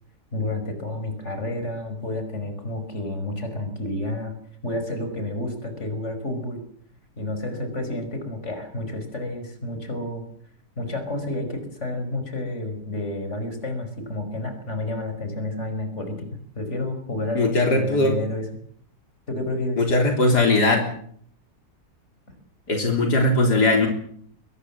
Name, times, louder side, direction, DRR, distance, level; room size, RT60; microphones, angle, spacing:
voice 1, 0.3-4.4 4.6-6.6 7.2-10.2 10.8-16.3 16.6-18.5 19.3-19.8, left 1 dB, 45° left, 7 dB, 5.7 m, -30 dB
voice 2, 17.4-18.1 19.8-20.8 22.7-23.9, left 2 dB, 80° left, 3 dB, 4.1 m, -19 dB
23.0 x 21.5 x 7.4 m, 0.62 s
omnidirectional pair, 1.7 m